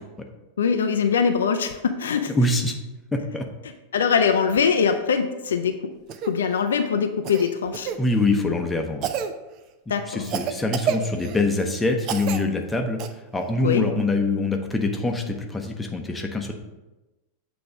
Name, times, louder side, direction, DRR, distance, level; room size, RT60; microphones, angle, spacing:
voice 1, 0.6-2.3 3.9-5.7 6.3-7.9 9.9-10.3 13.6-13.9, left 6 dB, 65° left, 6 dB, 0.4 m, -22 dB
voice 2, 2.3-2.8 3.1-3.5 8.0-9.1 10.1-13.0 13.3-16.5, left 2 dB, 10° left, 3 dB, 0.8 m, -24 dB
Cough, 6.1-6.3 7.2-8.0 9.0-9.3 10.2-11.4 12.0-12.4 13.0-13.1 14.9-15.0, right 8 dB, 40° right, 0.5 m, -29 dB
7.8 x 3.4 x 5.1 m, 1.1 s
figure-of-eight pair, 90°, 0 cm